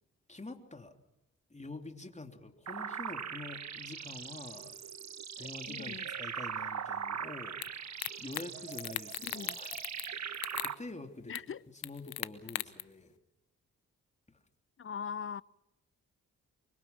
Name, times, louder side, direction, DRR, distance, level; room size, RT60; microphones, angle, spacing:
voice 1, 0.3-1.0 1.5-4.8 5.4-11.3 11.8-13.1 14.3-14.4, left 2 dB, 20° left, 3.3 m, -47 dB
sound 1, 2.7-10.7, right 7 dB, 50° right, 1.4 m, -41 dB
sound 2, 4.5-7.8 8.1-11.1, right 11 dB, 80° right, 1.3 m, -55 dB
voice 2, 5.7-6.1 9.2-9.6 11.3-11.6 14.8-15.4, left 7 dB, 35° left, 0.7 m, -41 dB
sound 3, 7.6-7.7 8.0-8.5 8.7-10.1 10.3-10.7 11.3-11.4 11.8-12.8, left 17 dB, 80° left, 0.9 m, -37 dB
24.5 x 24.5 x 5.9 m
hypercardioid pair, 45°, 36 cm